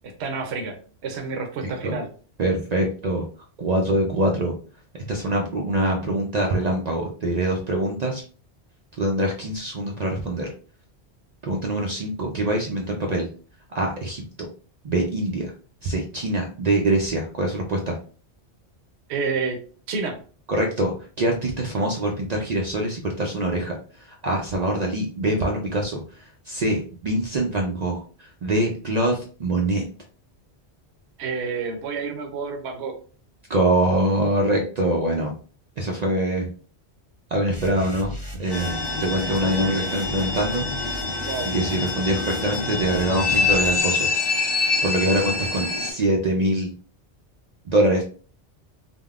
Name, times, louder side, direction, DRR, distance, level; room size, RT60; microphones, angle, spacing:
voice 1, 0.2-2.1 19.1-19.6 19.9-20.2 31.2-33.0 41.2-41.5, right 4 dB, 75° right, 4 dB, 0.9 m, -29 dB
voice 2, 2.4-3.2 3.6-4.5 4.9-8.2 9.0-10.5 11.4-13.3 13.7-14.2 14.8-15.5 15.8-18.0 20.5-29.8 33.5-35.3 35.8-36.5 37.3-40.6 41.4-44.1 44.8-46.7 47.7-48.0, right 1 dB, 55° right, 1 dB, 0.5 m, -24 dB
sound 1, 37.5-43.8, left 2 dB, 20° right, 0.8 m, -36 dB
sound 2, 38.5-45.9, left 4 dB, 30° left, 0.5 m, -26 dB
3.4 x 2.1 x 2.3 m, 0.40 s
omnidirectional pair, 1.1 m